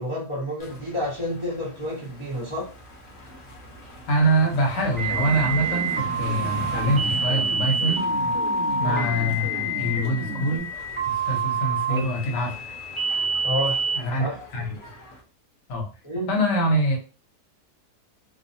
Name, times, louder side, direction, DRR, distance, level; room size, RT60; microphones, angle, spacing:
voice 1, 0.0-2.7 8.8-9.1 11.9-12.1 13.4-13.8 14.2-14.4 16.0-16.3, equal, 30° left, -7 dB, 0.6 m, -29 dB
sound 1, 0.6-15.2, equal, 60° left, 1.0 m, -42 dB
voice 2, 4.1-8.1 8.8-10.7 11.1-12.5 13.9-14.8 15.7-15.9 16.3-17.0, right 1 dB, 80° left, 2 dB, 1.4 m, -24 dB
sound 2, 5.0-14.0, right 3 dB, 40° right, 0.4 m, -27 dB
sound 3, 5.1-10.6, right 4 dB, 75° right, 1.1 m, -35 dB
3.0 x 2.0 x 2.6 m, 0.34 s
omnidirectional pair, 1.8 m